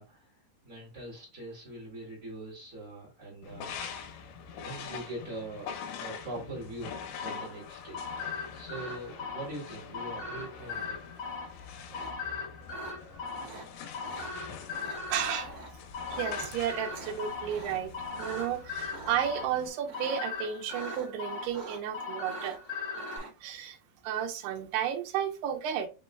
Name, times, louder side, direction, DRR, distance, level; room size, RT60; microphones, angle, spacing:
voice 1, 0.0-3.8 4.5-11.0 13.2-13.7, right 1 dB, 25° right, 1.8 m, -43 dB
sound 1, 3.4-19.7, left 7 dB, 85° left, 2.6 m, -45 dB
sound 2, 7.2-23.2, left 4 dB, 50° left, 1.5 m, -39 dB
sound 3, 10.6-11.1 11.9-12.1 12.7-12.9 13.4-13.7 14.0-14.3 14.7-15.0 15.4-15.7 16.0-16.4 16.9-18.5 18.9-19.2 19.8-20.3 20.7-21.1 21.4-22.0 22.2-23.3, right 3 dB, 50° right, 3.0 m, -46 dB
voice 2, 15.1-15.5 16.1-22.6 23.4-23.8 24.0-25.9, right 9 dB, 85° right, 2.8 m, -33 dB
6.4 x 3.1 x 2.2 m
omnidirectional pair, 4.6 m